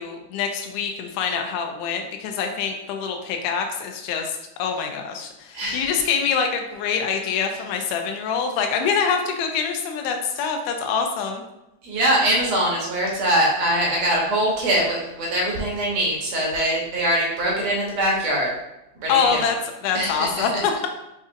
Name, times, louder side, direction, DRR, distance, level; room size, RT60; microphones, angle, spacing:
voice 1, 0.0-11.4 19.1-19.6 19.8-20.9, left 6 dB, 85° left, 4 dB, 2.1 m, -25 dB
voice 2, 5.5-5.9 11.8-18.5 19.0-19.5 19.9-20.6, right 1 dB, 70° right, -3 dB, 1.9 m, -22 dB
5.2 x 3.8 x 2.5 m, 0.91 s
omnidirectional pair, 3.7 m